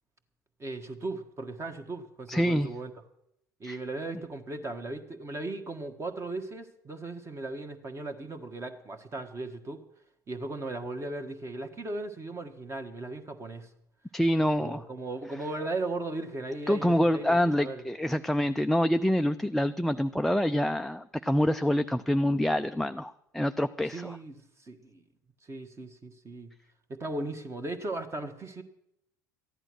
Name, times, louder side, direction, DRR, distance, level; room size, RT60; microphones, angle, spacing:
voice 1, 0.6-2.9 3.6-9.8 10.3-13.7 14.6-17.8 23.9-25.0 25.4-26.5 26.9-28.6, right 2 dB, 25° right, 7 dB, 1.5 m, -37 dB
voice 2, 2.3-2.7 3.6-3.8 14.1-14.8 16.7-24.2, equal, ahead, 8 dB, 0.4 m, -26 dB
14.0 x 11.0 x 6.2 m, 0.79 s
figure-of-eight pair, 65°, 11 cm